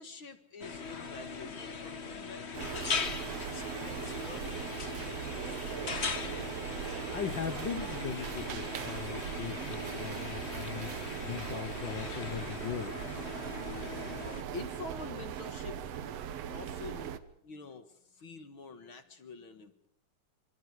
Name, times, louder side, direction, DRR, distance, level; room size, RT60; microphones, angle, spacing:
voice 1, 0.0-2.9 3.3-6.0 14.5-15.8 16.5-17.8 18.2-19.9, left 4 dB, 45° left, 9 dB, 2.1 m, -47 dB
sound 1, 0.6-14.4, left 5 dB, 60° left, 0.6 m, -40 dB
sound 2, 2.5-17.2, right 9 dB, 60° right, 2.1 m, -39 dB
voice 2, 7.1-10.9 11.2-13.0, left 9 dB, 85° left, 11 dB, 1.0 m, -39 dB
26.5 x 26.0 x 4.8 m, 0.74 s
omnidirectional pair, 3.6 m